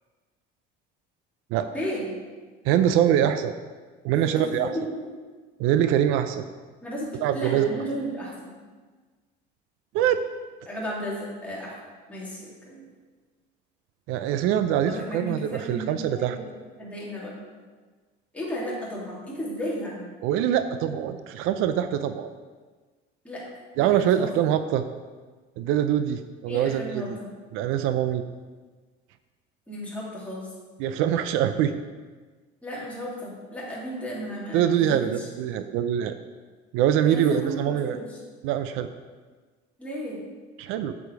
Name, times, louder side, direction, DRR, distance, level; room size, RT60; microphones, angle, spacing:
voice 1, 1.7-2.1 4.1-5.2 6.8-8.5 10.6-11.7 12.1-12.9 14.8-16.4 16.8-17.4 18.3-20.1 23.2-23.4 23.8-24.3 26.5-27.3 29.7-30.5 32.6-35.3 37.0-38.2 39.8-40.2, equal, 5° left, -6 dB, 2.9 m, -34 dB
voice 2, 2.6-3.5 4.0-4.7 5.6-6.4 7.2-7.7 9.9-10.2 14.1-16.4 20.2-22.3 23.8-24.9 25.6-27.1 27.5-28.2 30.8-31.7 34.5-36.2 36.7-38.0 38.4-38.9 40.6-40.9, right 10 dB, 75° right, 10 dB, 0.5 m, -24 dB
8.3 x 7.2 x 4.7 m, 1.4 s
cardioid pair, 135°, 21 cm